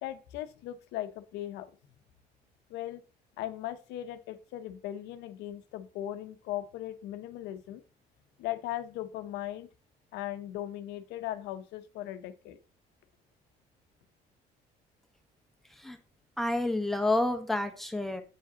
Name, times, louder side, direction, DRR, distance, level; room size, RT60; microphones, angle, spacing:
voice 1, 0.0-1.7 2.7-3.0 3.4-7.8 8.4-9.7 10.1-12.6, left 13 dB, 90° left, 10 dB, 0.7 m, -38 dB
voice 2, 16.4-18.2, left 2 dB, ahead, 4 dB, 1.0 m, -29 dB
8.1 x 4.8 x 2.8 m, 0.35 s
cardioid pair, 110°, 17 cm